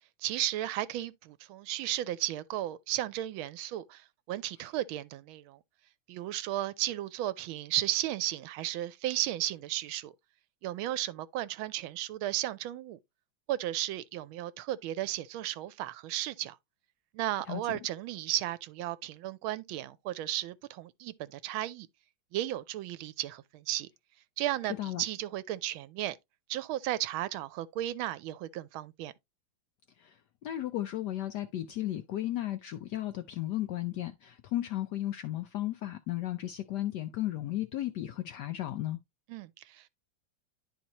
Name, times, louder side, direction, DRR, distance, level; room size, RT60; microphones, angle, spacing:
voice 1, 0.2-5.6 6.1-10.1 10.6-13.0 13.5-16.6 17.1-21.9 22.3-23.9 24.4-26.2 26.5-29.1 39.3-39.9, right 14 dB, 85° right, 1.4 m, -34 dB
voice 2, 30.0-39.0, left 14 dB, 70° left, 1.0 m, -35 dB
11.0 x 4.3 x 2.9 m
omnidirectional pair, 2.2 m